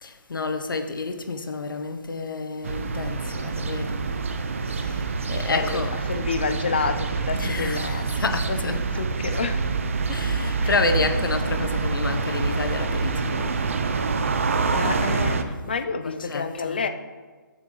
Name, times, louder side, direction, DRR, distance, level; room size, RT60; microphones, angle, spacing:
voice 1, 0.0-4.2 4.7-5.0 5.3-5.9 7.3-8.8 10.1-13.6 14.9-15.4 16.0-16.8, left 3 dB, 85° left, 0.9 m, -29 dB
sound 1, 2.6-15.4, right 4 dB, 40° right, 0.5 m, -26 dB
voice 2, 4.8-9.6 10.6-10.8 14.3-16.9, left 5 dB, 30° left, 0.4 m, -30 dB
8.3 x 6.8 x 3.8 m
hypercardioid pair, 175°, 11 cm